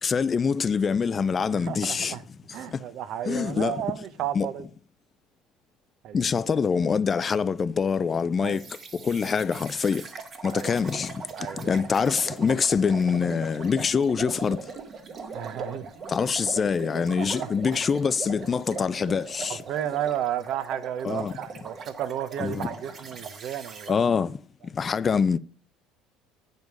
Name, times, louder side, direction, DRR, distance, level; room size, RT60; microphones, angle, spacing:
voice 1, 0.0-2.2 2.7-2.8 3.3-3.8 4.3-4.5 6.1-8.6 9.0-10.0 10.4-11.2 11.5-14.6 16.1-19.6 21.0-21.3 22.4-22.7 23.9-24.4 24.7-25.4, left 6 dB, 30° left, 0.3 m, -25 dB
voice 2, 1.5-2.2 2.5-4.6 6.0-6.2 8.4-8.6 10.5-10.7 11.4-11.7 15.3-15.9 17.2-17.5 19.5-23.9, right 11 dB, 60° right, 0.7 m, -33 dB
sound 1, 8.5-23.9, right 4 dB, 40° right, 1.4 m, -40 dB
9.1 x 5.3 x 4.7 m
supercardioid pair, 110°, 0 cm